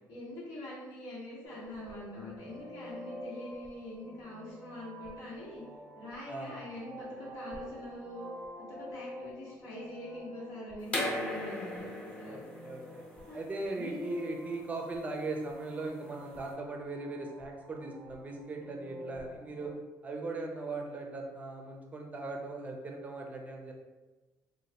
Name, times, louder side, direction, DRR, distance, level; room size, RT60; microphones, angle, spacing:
voice 1, 0.1-5.6 6.0-8.3 8.7-12.4 13.3-13.4 13.8-14.1, left 1 dB, 90° left, -7 dB, 1.3 m, -44 dB
sound 1, 1.4-19.7, equal, 10° right, 0.9 m, -49 dB
voice 2, 6.3-6.6 12.3-13.0 13.3-19.7 20.0-23.7, right 2 dB, 25° right, 1 dB, 0.5 m, -39 dB
sound 2, 10.9-16.5, left 1 dB, 20° left, 0.8 m, -39 dB
3.0 x 2.4 x 2.8 m, 1.2 s
cardioid pair, 130°, 7 cm